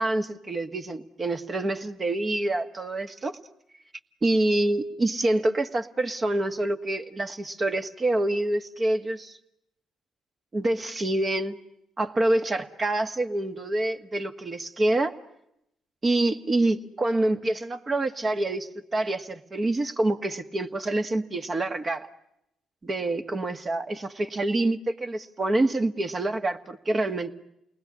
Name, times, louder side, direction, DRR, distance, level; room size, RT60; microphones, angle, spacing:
voice 1, 0.0-3.4 4.2-9.3 10.5-11.6 12.0-15.1 16.0-22.1 22.8-27.3, right 2 dB, 35° right, 7 dB, 1.6 m, -26 dB
28.5 x 20.0 x 9.9 m, 0.81 s
supercardioid pair, 55°, 0 cm